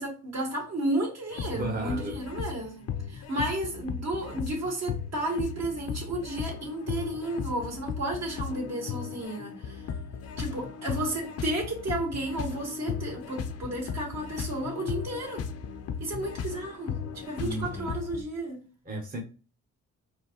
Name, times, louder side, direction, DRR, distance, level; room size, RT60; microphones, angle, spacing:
voice 1, 0.0-2.8 3.1-9.8 10.4-15.4 16.0-18.6, right 1 dB, 60° right, 2.1 m, -32 dB
sound 1, 1.3-18.2, left 6 dB, 55° left, 0.6 m, -36 dB
voice 2, 1.5-2.2 17.4-17.9 18.9-19.2, right 2 dB, 30° right, 1.0 m, -34 dB
4.3 x 2.7 x 2.9 m
cardioid pair, 90°, 30 cm